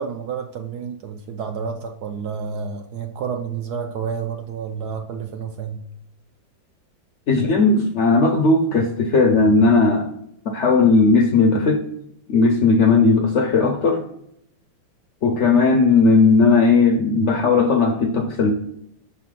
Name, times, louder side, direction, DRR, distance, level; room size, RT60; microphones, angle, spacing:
voice 1, 0.0-5.8 15.9-16.1, right 6 dB, 70° right, 5 dB, 1.0 m, -30 dB
voice 2, 7.3-10.1 10.5-11.8 12.3-14.0 15.2-18.5, left 3 dB, 70° left, 3 dB, 0.7 m, -16 dB
6.4 x 4.2 x 3.6 m, 0.73 s
omnidirectional pair, 2.1 m